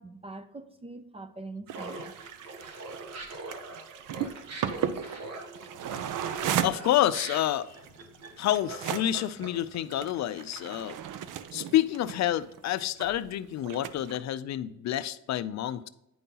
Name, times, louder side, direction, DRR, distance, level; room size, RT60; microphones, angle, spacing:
voice 1, 0.0-2.2, right 3 dB, 20° right, 0.4 m, -43 dB
Laughter, 1.7-9.8, right 2 dB, 50° right, 1.4 m, -42 dB
sound 1, 1.7-13.2 13.6-14.2, right 9 dB, 70° right, 0.6 m, -36 dB
voice 2, 6.6-7.7 8.4-11.0 11.5-15.9, left 12 dB, 55° left, 0.4 m, -28 dB
9.4 x 5.4 x 2.8 m
cardioid pair, 150°, 32 cm